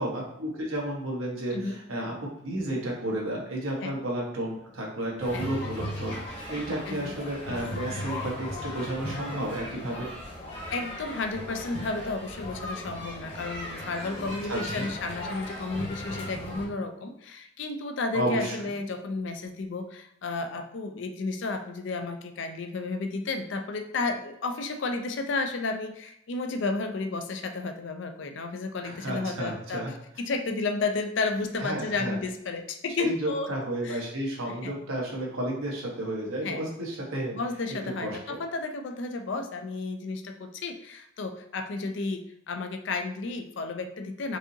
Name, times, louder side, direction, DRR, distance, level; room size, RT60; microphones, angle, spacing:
voice 1, 0.0-2.1 2.4-10.1 14.5-14.9 18.1-18.5 28.8-29.9 31.6-32.2 33.0-37.3 38.0-38.4, right 1 dB, 90° right, -2 dB, 1.2 m, -32 dB
sound 1, 5.2-16.7, left 1 dB, 30° left, 0.9 m, -37 dB
voice 2, 10.7-29.9 30.2-33.5 33.8-34.0 34.5-34.8 36.4-36.7 37.3-44.4, left 3 dB, 65° left, 7 dB, 0.4 m, -32 dB
4.7 x 2.8 x 2.7 m, 0.77 s
head